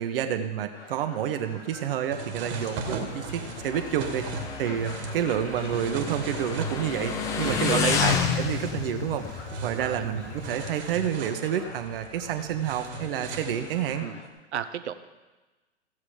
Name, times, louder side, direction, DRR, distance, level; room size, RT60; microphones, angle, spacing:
voice 1, 0.0-14.1, right 9 dB, 55° right, 7 dB, 1.3 m, -29 dB
sound 1, 0.7-14.3, left 2 dB, 85° left, 1.8 m, -46 dB
sound 2, 2.1-14.0, right 4 dB, 30° right, 2.0 m, -38 dB
Motorcycle, 2.4-10.7, left 7 dB, 10° left, 0.3 m, -31 dB
voice 2, 7.4-8.1 9.6-10.1 14.0-14.2 14.5-14.9, right 9 dB, 70° right, 12 dB, 1.0 m, -31 dB
15.5 x 7.3 x 5.0 m, 1.2 s
hypercardioid pair, 120°, 35 cm